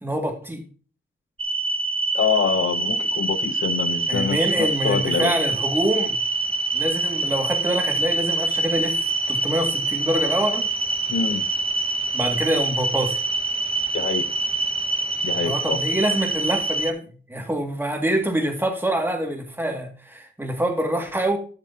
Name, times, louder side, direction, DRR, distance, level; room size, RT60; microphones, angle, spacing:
voice 1, 0.0-0.6 4.1-6.2 6.7-10.7 12.1-13.2 15.4-17.0 17.3-21.4, right 1 dB, 10° right, 2.2 m, -25 dB
sound 1, 1.4-16.9, right 2 dB, 25° right, 0.9 m, -25 dB
voice 2, 2.1-5.3 11.1-11.4 13.9-14.3 15.2-15.8, left 6 dB, 75° left, 0.8 m, -25 dB
12.0 x 6.7 x 2.9 m
wide cardioid pair, 105°, 20 cm